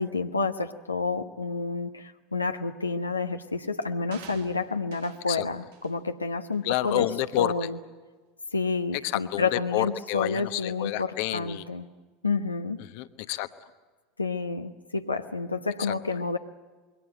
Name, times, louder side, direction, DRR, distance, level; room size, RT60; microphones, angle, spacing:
voice 1, 0.0-7.1 7.4-7.7 8.5-11.9 12.2-12.8 14.2-16.4, left 4 dB, 85° left, 5 dB, 1.0 m, -29 dB
sound 1, 4.1-5.3 5.7-6.0 6.5-6.7, right 9 dB, 65° right, 1.6 m, -49 dB
voice 2, 6.6-7.7 9.0-11.7 12.8-13.7 15.8-15.9, left 14 dB, 55° left, 11 dB, 1.1 m, -29 dB
27.5 x 22.5 x 7.8 m, 1.3 s
figure-of-eight pair, 75°, 0 cm